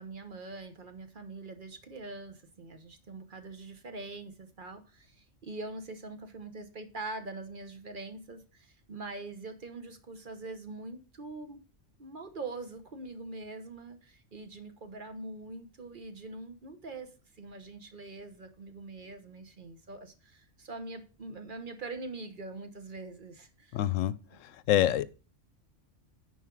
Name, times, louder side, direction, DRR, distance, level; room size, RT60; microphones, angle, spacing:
voice 1, 0.0-11.6 12.0-23.8 24.3-24.4, right 3 dB, 45° right, 1.1 m, -43 dB
voice 2, 23.7-25.1, left 12 dB, 85° left, 1.0 m, -27 dB
9.7 x 4.7 x 4.6 m
omnidirectional pair, 1.3 m